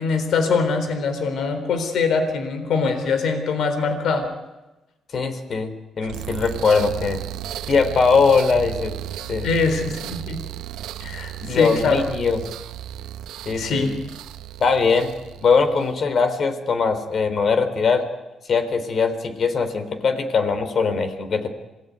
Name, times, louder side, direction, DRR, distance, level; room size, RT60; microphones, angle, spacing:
voice 1, 0.0-4.3 9.4-10.4 11.0-12.0 13.5-13.9, left 4 dB, 70° left, 7 dB, 3.9 m, -23 dB
voice 2, 5.1-7.2 7.7-8.9 9.3-9.5 11.4-12.4 13.5-13.9 14.6-15.1 15.4-18.0 18.5-21.5, left 5 dB, 50° left, 10 dB, 3.5 m, -21 dB
sound 1, 6.0-16.0, right 12 dB, 90° right, 1.2 m, -34 dB
26.5 x 18.5 x 9.5 m, 1.0 s
cardioid pair, 90°, 0 cm